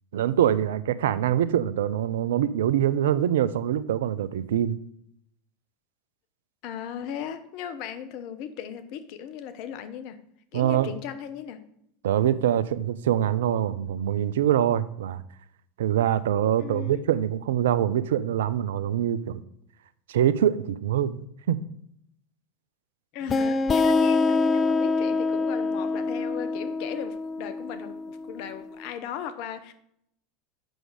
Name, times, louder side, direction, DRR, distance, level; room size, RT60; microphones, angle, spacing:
voice 1, 0.1-4.8 10.5-10.9 12.0-15.2 15.8-19.4 20.1-21.6, right 10 dB, 75° right, 16 dB, 0.5 m, -24 dB
voice 2, 6.6-10.2 10.5-11.6 16.6-17.0 23.1-29.7, left 8 dB, 55° left, 11 dB, 0.9 m, -37 dB
sound 1, 23.3-28.7, left 3 dB, 25° left, 0.5 m, -25 dB
7.8 x 6.3 x 4.9 m, 0.72 s
hypercardioid pair, 85°, 0 cm